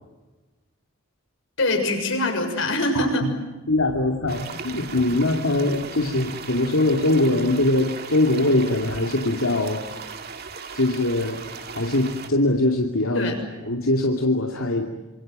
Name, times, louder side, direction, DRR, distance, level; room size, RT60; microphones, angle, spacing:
voice 1, 1.6-3.3 13.1-13.5, left 1 dB, 60° left, 5 dB, 6.7 m, -23 dB
voice 2, 2.9-3.3 3.7-10.0 10.7-13.3 13.7-14.9, left 2 dB, 80° left, 1 dB, 2.6 m, -22 dB
sound 1, 4.3-12.3, right 5 dB, 50° right, 2.2 m, -37 dB
27.5 x 26.5 x 7.7 m, 1.2 s
head